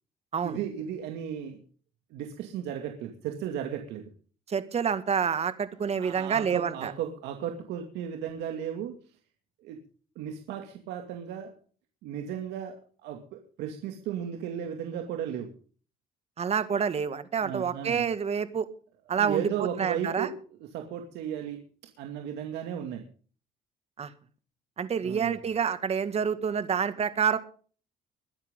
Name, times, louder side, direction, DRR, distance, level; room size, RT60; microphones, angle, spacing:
voice 1, 0.4-1.6 2.1-4.0 6.0-9.0 9.6-9.8 10.2-11.5 12.0-15.5 17.4-18.0 19.1-21.6 22.0-23.0 25.0-25.4, right 9 dB, 85° right, 4 dB, 2.4 m, -35 dB
voice 2, 4.5-6.9 16.4-18.7 19.1-19.5 19.8-20.3 24.0-24.1 24.8-27.4, right 7 dB, 40° right, 11 dB, 1.9 m, -28 dB
22.0 x 11.0 x 3.8 m, 0.42 s
cardioid pair, 110°, 17 cm